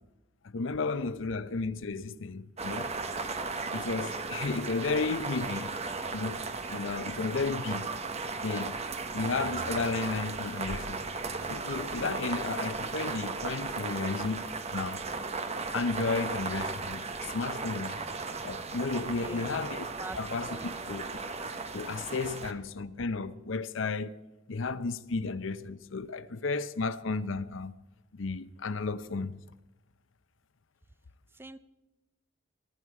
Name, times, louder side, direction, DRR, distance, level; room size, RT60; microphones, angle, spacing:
voice 1, 0.4-2.9 3.7-5.8 6.1-6.4 6.7-7.9 8.4-8.8 9.1-11.1 11.5-15.0 15.7-18.0 18.4-19.9 20.2-20.6 20.9-21.1 21.7-24.2 24.5-27.7 28.1-29.4, left 4 dB, 70° left, 0.6 m, -33 dB
sound 1, 2.6-22.5, right 4 dB, 35° right, 1.0 m, -36 dB
voice 2, 19.2-19.6 19.9-20.2 20.4-20.8 31.3-31.6, right 2 dB, 10° right, 0.5 m, -44 dB
21.0 x 12.5 x 4.8 m
head